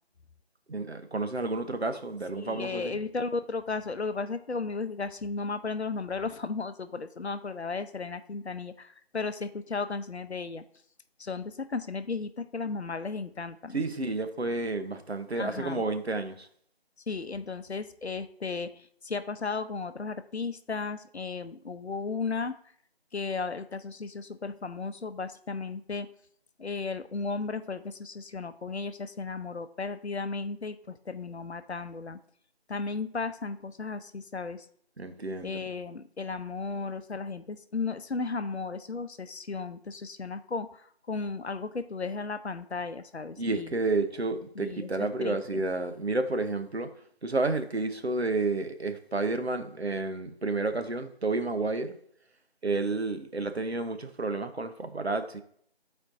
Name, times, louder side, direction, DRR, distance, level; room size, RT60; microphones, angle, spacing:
voice 1, 0.7-3.0 13.7-16.5 35.0-35.6 43.4-46.9 47.2-52.0 52.6-55.4, right 3 dB, 80° right, 8 dB, 0.9 m, -30 dB
voice 2, 2.4-10.6 11.2-13.8 15.3-15.8 17.1-22.5 23.1-26.1 26.6-32.2 32.7-34.7 35.4-43.7 44.6-45.6, left 4 dB, 85° left, 11 dB, 0.7 m, -35 dB
11.5 x 4.5 x 2.6 m, 0.62 s
figure-of-eight pair, 175°, 32 cm